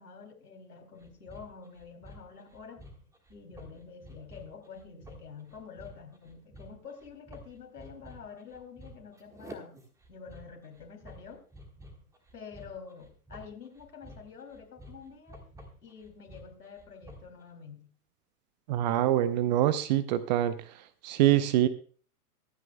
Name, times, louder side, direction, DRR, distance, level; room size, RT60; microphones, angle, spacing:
voice 1, 0.0-2.8 3.3-9.8 10.1-11.4 12.3-15.5 15.8-17.9, left 6 dB, 75° left, 5 dB, 3.1 m, -48 dB
sound 1, 1.0-17.4, equal, 5° right, 1.5 m, -51 dB
voice 2, 18.7-20.5 21.0-21.7, right 13 dB, 30° right, 14 dB, 0.6 m, -24 dB
24.5 x 9.1 x 2.2 m, 0.40 s
figure-of-eight pair, 105°, 47 cm